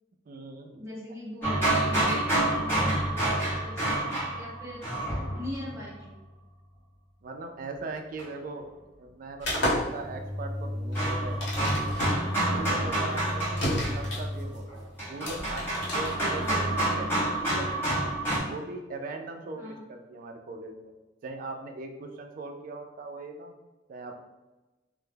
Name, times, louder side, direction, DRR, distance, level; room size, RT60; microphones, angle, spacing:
voice 1, 0.3-0.8 7.2-8.7 9.0-12.0 12.4-15.7 15.9-18.0 18.4-20.9 21.2-23.5 23.9-24.2, right 3 dB, 50° right, 4 dB, 0.3 m, -40 dB
voice 2, 0.8-4.9 5.3-6.1 16.3-16.6 19.6-19.8, left 1 dB, 15° right, -4 dB, 0.6 m, -40 dB
sound 1, 1.4-5.7 8.2-8.3 10.0-18.4, right 1 dB, 10° left, 0.9 m, -28 dB
sound 2, 9.4-16.8, left 1 dB, 70° left, 0.9 m, -32 dB
2.2 x 2.0 x 3.2 m, 1.1 s
head